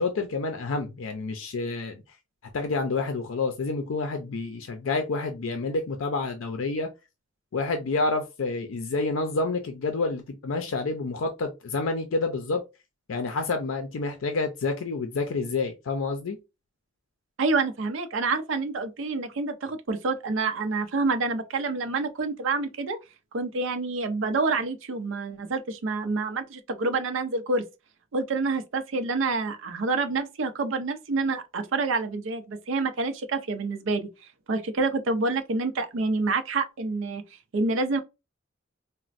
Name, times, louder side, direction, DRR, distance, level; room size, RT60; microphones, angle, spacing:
voice 1, 0.0-2.0 2.5-6.9 7.5-12.6 13.1-16.4, left 3 dB, 85° left, 0.5 m, -28 dB
voice 2, 17.4-23.0 23.3-27.6 28.1-34.1 34.5-38.0, right 3 dB, 70° right, 0.5 m, -27 dB
4.0 x 2.1 x 2.5 m
head